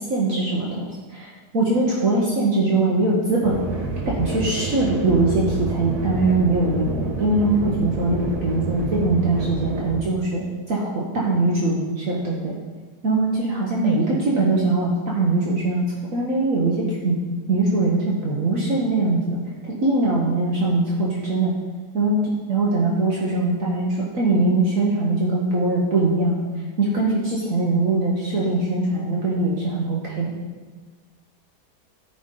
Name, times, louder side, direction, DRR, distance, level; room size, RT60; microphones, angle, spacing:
voice 1, 0.0-3.6 4.1-12.5 13.0-15.8 16.1-17.2 17.5-19.4 19.6-21.5 21.9-26.4 26.8-30.4, right 2 dB, 55° right, -4 dB, 1.5 m, -22 dB
sound 1, 3.4-10.0, right 1 dB, 75° right, 1.8 m, -28 dB
13.5 x 5.1 x 3.8 m, 1.4 s
omnidirectional pair, 1.7 m